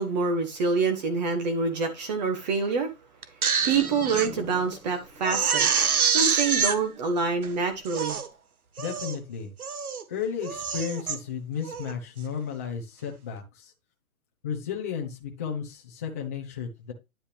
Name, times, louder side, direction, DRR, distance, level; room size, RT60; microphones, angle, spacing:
voice 1, 0.0-2.9 3.6-5.7 6.1-8.2, right 4 dB, 30° right, 1.4 m, -26 dB
Crying sobbing, 3.2-4.3 4.7-4.8 5.2-6.8 7.4-7.5 7.9-8.3 8.8-9.2 9.6-10.0 10.4-11.2 11.6-11.9, right 6 dB, 85° right, 1.5 m, -26 dB
sound 1, 3.5-8.2, left 2 dB, 5° right, 1.1 m, -46 dB
voice 2, 8.8-9.5 10.1-13.7 14.4-16.9, left 7 dB, 10° left, 0.5 m, -33 dB
10.0 x 5.4 x 3.3 m
hypercardioid pair, 155°, 42 cm